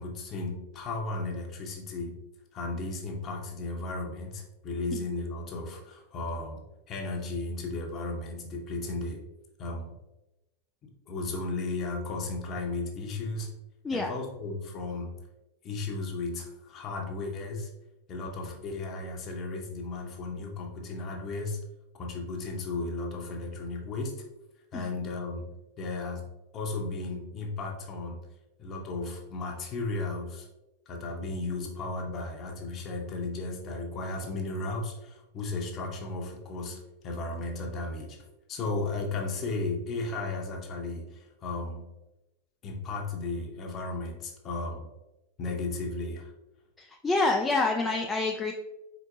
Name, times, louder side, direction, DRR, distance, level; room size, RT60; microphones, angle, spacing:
voice 1, 0.0-2.1 2.5-6.6 6.9-9.2 9.6-9.9 10.8-13.5 13.9-15.1 15.6-17.7 18.1-21.6 21.9-24.1 24.7-25.5 25.8-26.2 26.5-28.2 28.6-30.5 30.9-38.2 38.5-41.8 42.6-44.9 45.4-46.3, left 3 dB, 30° left, 2 dB, 0.8 m, -35 dB
voice 2, 46.8-48.5, left 3 dB, 15° left, 2 dB, 0.3 m, -27 dB
4.3 x 4.0 x 2.5 m, 0.97 s
figure-of-eight pair, 90°, 0 cm